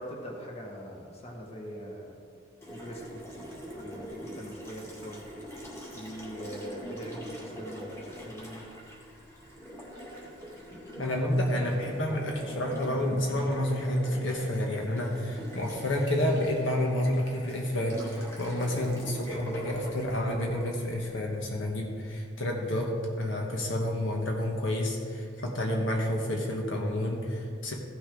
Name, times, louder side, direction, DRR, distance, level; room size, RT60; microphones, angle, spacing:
voice 1, 0.0-2.2 2.7-3.2 3.7-5.2 5.9-8.6, equal, 35° left, -1 dB, 1.5 m, -42 dB
Water tap faucet, 2.6-21.8, equal, 15° left, 2.1 m, -42 dB
voice 2, 11.0-27.7, left 1 dB, 70° left, 0 dB, 1.3 m, -29 dB
15.0 x 6.2 x 3.8 m, 2.2 s
head